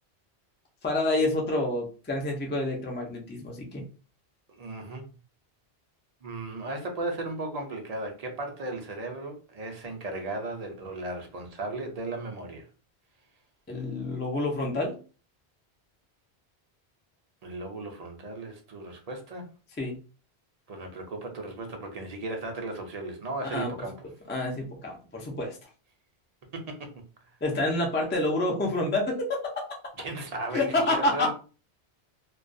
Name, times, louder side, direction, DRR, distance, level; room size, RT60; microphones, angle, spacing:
voice 1, 0.8-3.8 13.7-15.0 19.8-20.0 23.5-23.7 24.3-25.6 27.4-29.5 30.5-31.3, left 2 dB, 20° left, 0 dB, 0.3 m, -28 dB
voice 2, 4.5-5.1 6.2-12.7 17.4-19.5 20.7-24.1 26.5-27.3 30.0-31.3, right 2 dB, 50° right, 3 dB, 0.5 m, -36 dB
2.3 x 2.2 x 2.5 m, 0.36 s
omnidirectional pair, 1.1 m